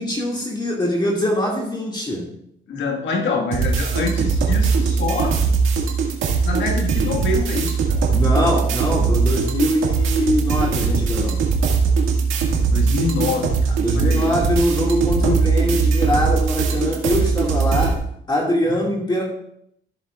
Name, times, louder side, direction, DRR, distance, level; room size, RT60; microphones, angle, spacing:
voice 1, 0.0-2.3 8.1-11.4 13.8-18.0 18.3-19.2, left 1 dB, 20° left, -2 dB, 2.0 m, -22 dB
voice 2, 2.7-5.4 6.4-8.0 12.7-14.3 15.2-15.4 18.7-18.8, left 3 dB, 70° left, 1 dB, 1.7 m, -25 dB
sound 1, 3.5-17.9, right 5 dB, 85° right, 1.8 m, -20 dB
14.5 x 7.3 x 2.4 m, 0.73 s
cardioid pair, 90°, 20 cm